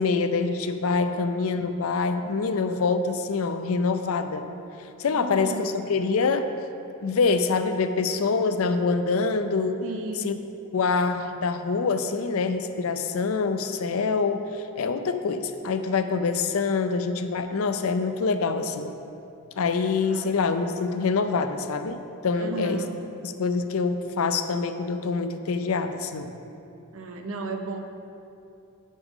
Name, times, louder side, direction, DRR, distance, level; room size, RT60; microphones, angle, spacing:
voice 1, 0.0-4.5 4.8-6.5 7.0-9.8 10.2-10.4 10.7-18.9 19.6-22.0 22.2-26.4, left 4 dB, 75° left, 9 dB, 0.5 m, -25 dB
voice 2, 5.1-5.7 9.8-10.3 20.0-20.3 22.4-23.0 26.9-27.8, right 3 dB, 65° right, 5 dB, 0.7 m, -34 dB
8.3 x 8.2 x 3.6 m, 2.7 s
head